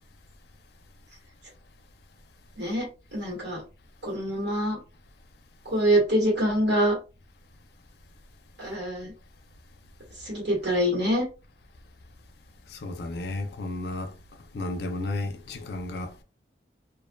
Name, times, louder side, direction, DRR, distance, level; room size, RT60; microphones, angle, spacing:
voice 1, 2.6-3.6 4.0-4.8 5.6-7.0 8.6-9.1 10.2-11.2, equal, 80° right, 1.5 m, -25 dB
voice 2, 12.7-14.1 14.5-16.2, left 2 dB, 65° left, 0.4 m, -33 dB
2.4 x 2.4 x 2.2 m
head